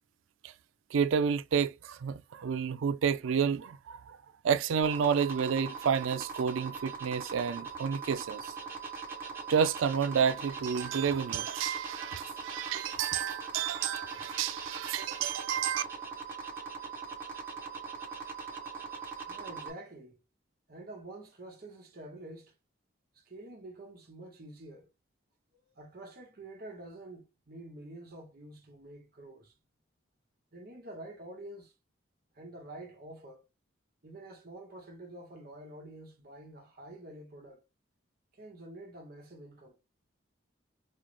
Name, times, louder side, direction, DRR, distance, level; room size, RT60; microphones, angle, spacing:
voice 1, 0.9-4.2 4.4-8.5 9.5-15.8, right 7 dB, 85° right, 0.4 m, -30 dB
sound 1, 4.8-19.7, right 5 dB, 10° right, 1.0 m, -41 dB
voice 2, 19.3-20.2 20.7-22.5 23.1-24.9 25.7-29.6 30.5-31.7 32.3-33.5 34.0-37.6 38.3-39.8, right 1 dB, 50° right, 0.9 m, -48 dB
5.3 x 2.0 x 3.1 m
head